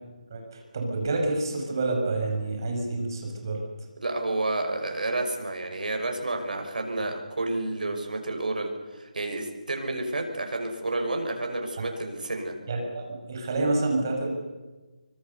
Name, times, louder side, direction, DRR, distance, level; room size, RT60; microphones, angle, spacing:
voice 1, 0.3-3.6 12.7-14.3, right 2 dB, 30° right, 1 dB, 5.6 m, -28 dB
voice 2, 4.0-12.5, right 2 dB, 90° right, 3 dB, 5.9 m, -30 dB
25.0 x 24.5 x 6.9 m, 1.2 s
hypercardioid pair, 180°, 4 cm